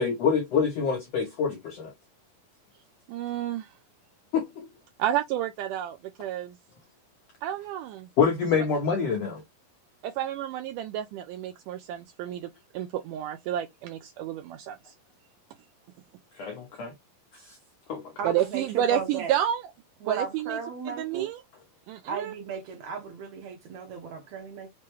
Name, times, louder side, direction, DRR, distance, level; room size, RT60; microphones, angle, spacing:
voice 1, 0.0-1.9 4.3-4.7 8.2-9.4 16.3-16.9 17.3-17.6 17.9-18.1, left 6 dB, 80° left, 1.5 m, -26 dB
voice 2, 3.1-3.7 5.0-6.5 7.4-8.1 10.0-14.8 18.2-19.6 20.1-20.6 20.9-21.4 21.9-22.3, right 11 dB, 85° right, 1.9 m, -30 dB
voice 3, 18.2-19.4 20.0-21.3 22.1-24.7, right 6 dB, 70° right, 1.9 m, -35 dB
5.9 x 2.2 x 3.0 m
omnidirectional pair, 4.1 m